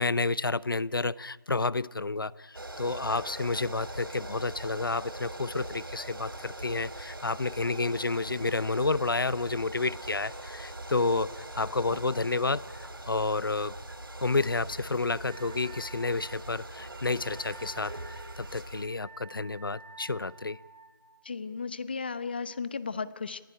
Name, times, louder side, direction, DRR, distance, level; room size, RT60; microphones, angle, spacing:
voice 1, 0.0-13.7 14.2-20.6, left 3 dB, 75° left, 20 dB, 0.8 m, -30 dB
sound 1, 2.5-18.9, right 1 dB, 80° right, 2.9 m, -42 dB
Wind instrument woodwind instrument, 15.3-20.9, right 4 dB, 20° right, 3.7 m, -51 dB
voice 2, 21.2-23.4, left 5 dB, 25° left, 15 dB, 0.8 m, -35 dB
30.0 x 16.0 x 9.9 m, 1.3 s
figure-of-eight pair, 170°, 12 cm